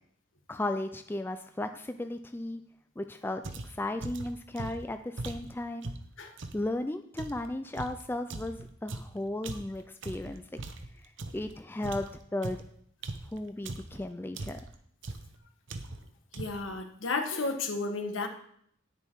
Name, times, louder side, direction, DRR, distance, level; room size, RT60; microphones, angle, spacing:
voice 1, 0.5-2.6 3.0-5.9 6.5-10.5 11.3-12.6 13.3-14.6, left 1 dB, 10° left, 7 dB, 0.4 m, -35 dB
sound 1, 3.4-6.7 7.2-11.5 11.8-14.0 14.4-14.8 15.0-15.4 15.7-16.1 16.3-16.7, right 2 dB, 65° right, 0.8 m, -40 dB
voice 2, 16.3-18.3, left 3 dB, 75° left, 5 dB, 1.4 m, -32 dB
10.0 x 6.8 x 4.6 m, 0.66 s
head